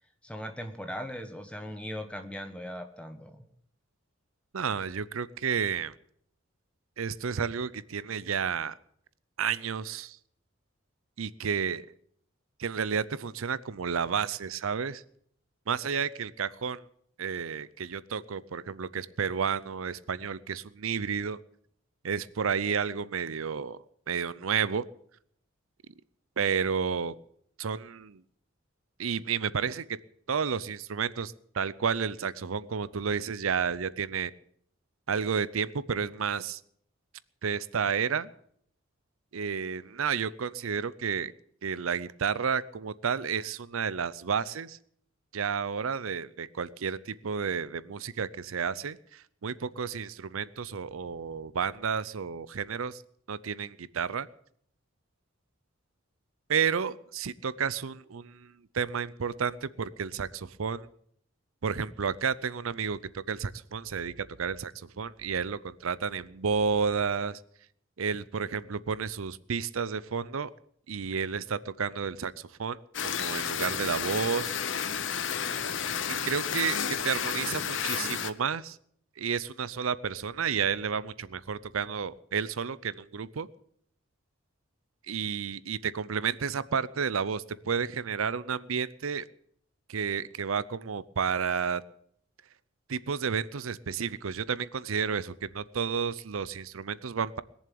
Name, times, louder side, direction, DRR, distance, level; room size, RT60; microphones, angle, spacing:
voice 1, 0.2-3.5, equal, 5° left, 6 dB, 1.4 m, -39 dB
voice 2, 4.5-5.9 7.0-8.7 9.4-10.2 11.2-11.9 12.6-15.0 15.7-16.8 17.2-21.4 22.0-23.8 24.1-24.8 26.4-27.1 27.6-28.2 29.0-30.0 30.3-34.3 35.1-36.6 37.4-38.3 39.3-41.3 41.6-44.8 45.3-53.0 53.3-54.3 56.5-60.9 61.6-67.4 68.0-70.5 70.9-72.8 73.0-74.5 76.1-78.8 79.2-83.5 85.1-89.2 89.9-91.8 92.9-97.4, right 6 dB, 90° right, 18 dB, 0.6 m, -31 dB
sound 1, 72.9-78.3, left 7 dB, 65° left, 0.9 m, -31 dB
20.5 x 7.3 x 8.5 m, 0.66 s
head